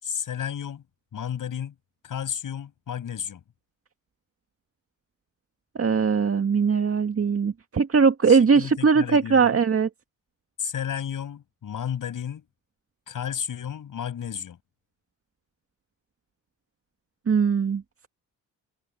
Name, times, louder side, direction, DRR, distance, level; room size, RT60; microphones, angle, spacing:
voice 1, 0.0-0.8 1.1-1.7 2.0-3.4 8.3-9.6 10.6-12.4 13.1-14.6, left 8 dB, 65° left, 6.0 m, -32 dB
voice 2, 5.8-9.9 17.3-17.8, right 5 dB, 40° right, 2.0 m, -20 dB
supercardioid pair, 60°, 35 cm